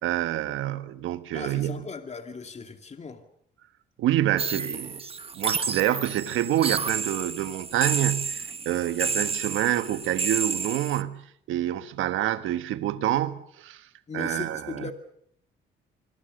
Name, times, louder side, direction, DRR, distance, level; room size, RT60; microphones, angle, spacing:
voice 1, 0.0-1.9 4.0-5.0 5.3-13.8 14.1-14.9, right 12 dB, 85° right, 1.4 m, -27 dB
voice 2, 1.3-3.2 14.1-14.9, left 4 dB, 35° left, 2.5 m, -37 dB
sound 1, 4.4-11.0, right 5 dB, 30° right, 1.2 m, -31 dB
25.5 x 23.0 x 6.6 m
cardioid pair, 90°, 20 cm